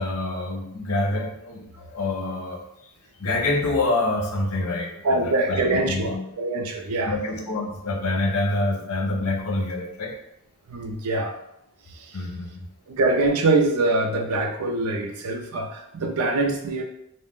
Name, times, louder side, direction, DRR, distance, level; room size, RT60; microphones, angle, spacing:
voice 1, 0.0-2.6 3.2-6.2 7.1-10.1 12.1-12.7, left 2 dB, 85° left, 1 dB, 0.6 m, -26 dB
voice 2, 5.0-7.1 10.7-11.3 12.0-12.2 12.9-16.8, right 2 dB, 90° right, 3 dB, 0.5 m, -24 dB
2.4 x 2.1 x 3.5 m, 0.78 s
head